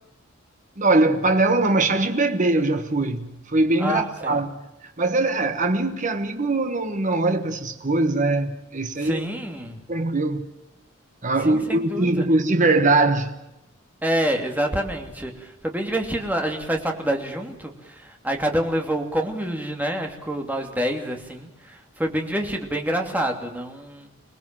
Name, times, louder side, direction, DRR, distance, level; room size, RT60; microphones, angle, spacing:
voice 1, 0.8-9.3 9.9-10.5 11.2-13.3, right 2 dB, 40° right, 1.4 m, -22 dB
voice 2, 3.8-4.4 9.0-9.8 11.4-12.3 14.0-24.1, right 1 dB, 10° right, 2.8 m, -27 dB
25.0 x 19.5 x 7.5 m
head